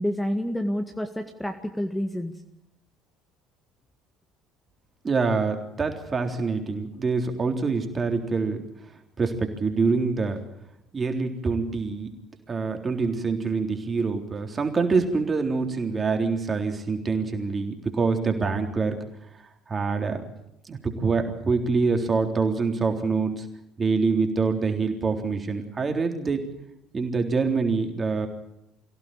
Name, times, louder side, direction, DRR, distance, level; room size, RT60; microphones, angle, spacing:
voice 1, 0.0-2.3, equal, 5° left, 6 dB, 1.8 m, -28 dB
voice 2, 5.0-8.6 9.2-10.4 10.9-12.1 12.5-19.0 19.7-20.2 20.6-23.5 23.8-26.4 26.9-28.3, right 4 dB, 25° right, 4 dB, 3.6 m, -25 dB
24.5 x 16.5 x 8.9 m, 0.81 s
figure-of-eight pair, 60°, 0 cm